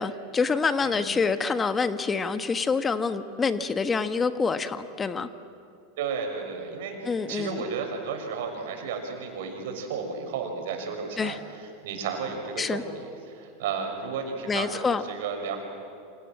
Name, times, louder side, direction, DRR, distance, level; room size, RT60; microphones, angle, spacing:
voice 1, 0.0-5.3 7.0-7.6 11.2-11.4 12.6-12.8 14.5-15.0, left 4 dB, 20° left, 10 dB, 1.4 m, -26 dB
voice 2, 6.0-7.0 7.3-13.1 13.3-15.6, right 5 dB, 70° right, 4 dB, 6.1 m, -33 dB
29.0 x 27.0 x 7.6 m, 2.5 s
hypercardioid pair, 90°, 0 cm